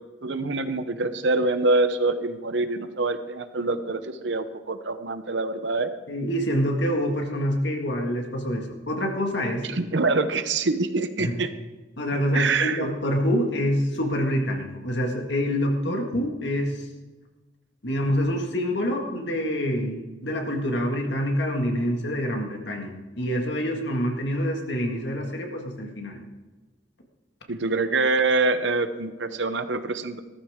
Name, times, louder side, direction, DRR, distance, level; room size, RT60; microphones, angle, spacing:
voice 1, 0.2-5.9 9.7-11.5 12.3-12.8 15.9-16.0 27.5-30.2, right 3 dB, 70° right, 10 dB, 0.9 m, -25 dB
voice 2, 6.1-9.7 11.2-11.4 12.0-16.9 17.8-26.2, equal, 65° left, 2 dB, 2.0 m, -26 dB
15.5 x 13.5 x 3.7 m, 1.2 s
head